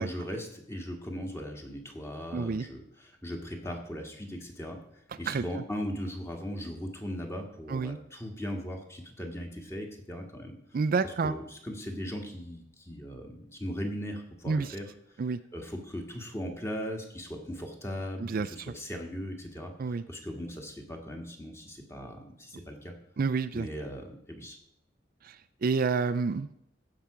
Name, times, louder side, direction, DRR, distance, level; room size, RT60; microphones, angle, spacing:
voice 1, 0.0-4.8 5.2-10.5 11.0-14.9 15.5-22.9 23.5-24.6, equal, 15° left, 2 dB, 1.6 m, -38 dB
voice 2, 2.3-2.7 5.3-5.4 7.7-8.0 10.7-11.3 14.5-14.7 15.2-15.4 18.2-18.5 19.8-20.0 23.2-23.7 25.2-25.3 25.6-26.5, right 4 dB, 50° right, 10 dB, 0.4 m, -28 dB
15.0 x 5.8 x 4.9 m, 0.77 s
head